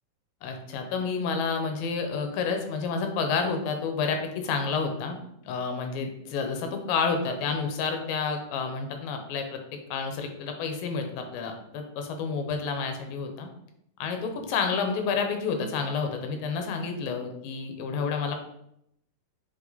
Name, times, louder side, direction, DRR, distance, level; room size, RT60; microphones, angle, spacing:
voice 1, 0.4-5.2 5.5-9.6 9.9-13.5 14.0-18.4, left 5 dB, 85° left, 5 dB, 2.6 m, -29 dB
8.0 x 3.0 x 4.0 m, 0.77 s
omnidirectional pair, 4.0 m